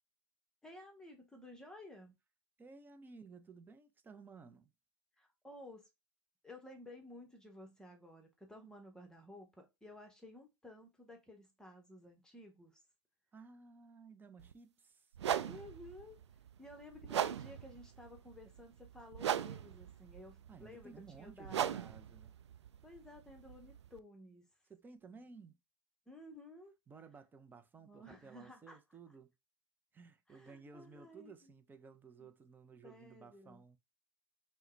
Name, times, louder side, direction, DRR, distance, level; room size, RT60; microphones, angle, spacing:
voice 1, 0.6-2.2 5.2-5.9 6.4-12.8 15.4-16.2 16.6-21.8 22.8-24.4 26.1-26.7 27.8-28.8 30.3-31.6 32.2-32.3 32.8-33.6, left 1 dB, 5° left, 0.9 m, -54 dB
voice 2, 2.6-4.7 13.3-15.1 20.5-22.4 24.7-25.6 26.9-29.3 29.9-33.8, right 5 dB, 15° right, 0.5 m, -56 dB
sound 1, 14.4-14.5 15.1-24.0, right 10 dB, 70° right, 0.4 m, -40 dB
5.5 x 2.1 x 3.1 m
figure-of-eight pair, 100°, 15 cm